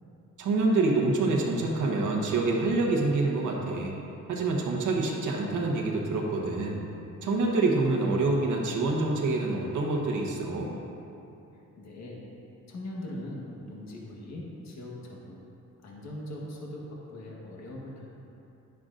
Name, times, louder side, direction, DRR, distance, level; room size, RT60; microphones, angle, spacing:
voice 1, 0.4-3.9 4.3-6.8 7.2-10.7, right 3 dB, 70° right, -2 dB, 1.2 m, -26 dB
voice 2, 11.5-12.2 12.7-15.4 15.8-18.1, left 1 dB, 60° left, -3 dB, 1.6 m, -41 dB
10.5 x 10.5 x 2.6 m, 2.8 s
cardioid pair, 140°, 31 cm